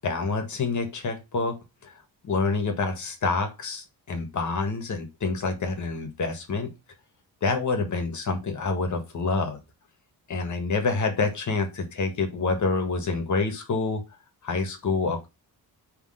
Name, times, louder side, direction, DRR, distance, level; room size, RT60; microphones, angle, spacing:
voice 1, 0.0-1.9 2.2-6.7 7.4-9.6 10.3-14.0 14.4-15.3, left 3 dB, 45° left, 1.5 m, -27 dB
5.9 x 3.4 x 4.9 m
wide cardioid pair, 160°, 39 cm